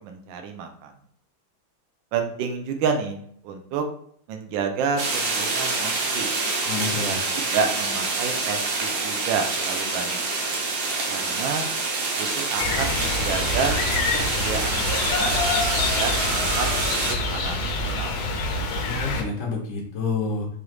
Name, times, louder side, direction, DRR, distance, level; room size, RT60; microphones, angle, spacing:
voice 1, 0.0-0.9 2.1-3.9 4.3-6.3 7.0-10.3 11.1-11.7 12.2-13.8 14.1-15.4 15.9-18.3, right 5 dB, 75° right, 5 dB, 1.3 m, -30 dB
sound 1, 5.0-17.1, right 3 dB, 60° right, 1.1 m, -26 dB
voice 2, 6.6-7.2 18.8-20.5, left 4 dB, 55° left, -3 dB, 1.0 m, -28 dB
sound 2, 12.6-19.2, left 3 dB, 85° left, 1.5 m, -26 dB
5.0 x 2.4 x 3.1 m, 0.63 s
omnidirectional pair, 2.1 m